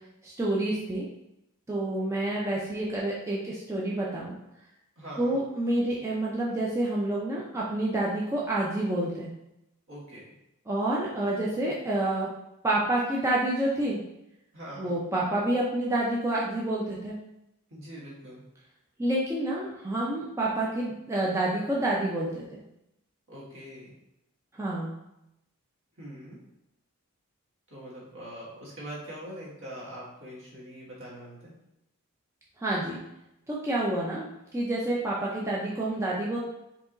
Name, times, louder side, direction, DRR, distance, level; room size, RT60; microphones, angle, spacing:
voice 1, 0.2-1.1 1.7-4.3 5.2-9.3 10.7-12.3 12.6-14.0 14.8-17.2 19.0-22.6 24.5-24.9 32.6-33.0 33.5-36.4, right 1 dB, 15° right, -5 dB, 0.5 m, -28 dB
voice 2, 5.0-5.4 9.9-10.2 14.5-14.9 17.7-18.4 23.3-23.9 26.0-26.4 27.7-31.5, right 1 dB, 60° right, -6 dB, 1.7 m, -42 dB
4.8 x 3.0 x 3.8 m, 0.86 s
head